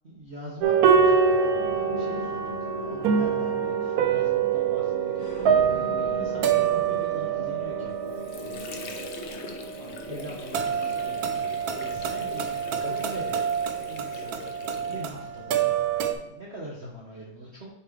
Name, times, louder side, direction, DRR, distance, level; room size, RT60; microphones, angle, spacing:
voice 1, 0.0-9.0 9.8-13.5 13.9-17.7, right 1 dB, 45° right, -4 dB, 1.0 m, -43 dB
sound 1, 0.6-16.1, right 7 dB, 75° right, 0.8 m, -26 dB
sound 2, 1.5-16.1, left 2 dB, 45° left, 1.7 m, -42 dB
Water / Sink (filling or washing), 7.8-15.4, left 4 dB, 80° left, 0.6 m, -42 dB
7.5 x 3.2 x 5.1 m, 0.87 s
omnidirectional pair, 2.2 m